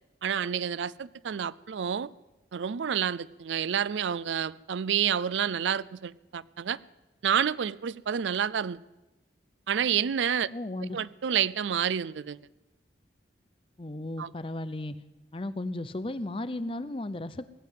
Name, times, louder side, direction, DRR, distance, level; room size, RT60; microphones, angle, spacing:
voice 1, 0.2-2.1 2.5-6.8 7.2-8.8 9.7-10.5 10.9-12.4 14.2-14.3, right 8 dB, 90° right, 21 dB, 0.4 m, -29 dB
voice 2, 10.5-11.0 13.8-14.9 15.3-17.5, left 1 dB, 30° left, 13 dB, 0.6 m, -35 dB
18.0 x 7.7 x 9.2 m, 1.1 s
head